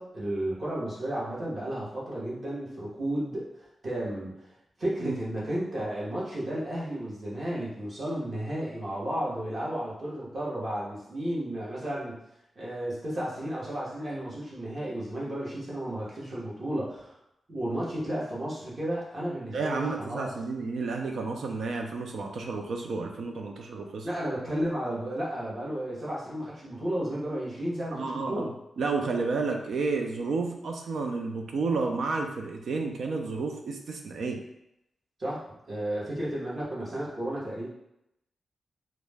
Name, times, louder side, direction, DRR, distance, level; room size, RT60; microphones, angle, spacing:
voice 1, 0.0-4.5 4.8-12.2 12.6-17.1 17.5-20.3 24.0-28.5 35.2-37.7, right 1 dB, 40° right, -7 dB, 0.9 m, -33 dB
voice 2, 19.5-24.1 27.9-28.5 28.8-34.4, right 4 dB, 80° right, 3 dB, 0.4 m, -31 dB
2.3 x 2.0 x 3.3 m, 0.82 s
wide cardioid pair, 140°, 0 cm